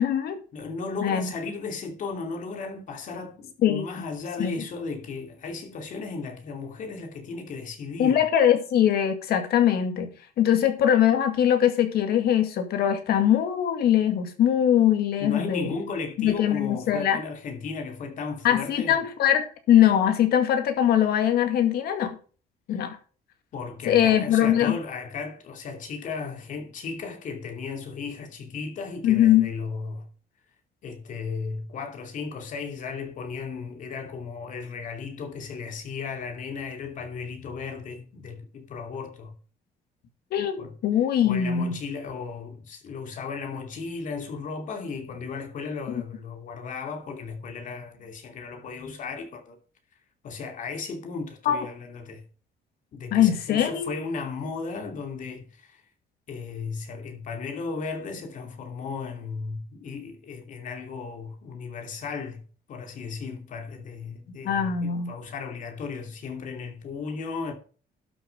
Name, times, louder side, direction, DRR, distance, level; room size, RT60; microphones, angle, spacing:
voice 1, 0.0-0.4 1.0-1.3 3.6-3.9 4.4-4.5 8.0-10.1 10.4-15.7 16.2-17.2 18.4-22.2 22.7-23.0 23.9-24.8 29.0-29.5 40.3-41.8 51.5-51.7 53.1-53.9 64.4-65.1, left 10 dB, 65° left, 2.2 m, -22 dB
voice 2, 0.5-8.2 15.2-19.0 22.8-22.9 23.5-30.0 30.8-39.3 40.6-40.7 41.2-49.6 50.2-52.2 52.9-55.8 56.3-62.4 62.7-67.5, left 4 dB, 50° left, 2.7 m, -35 dB
12.0 x 6.9 x 5.2 m
cardioid pair, 165°, 17 cm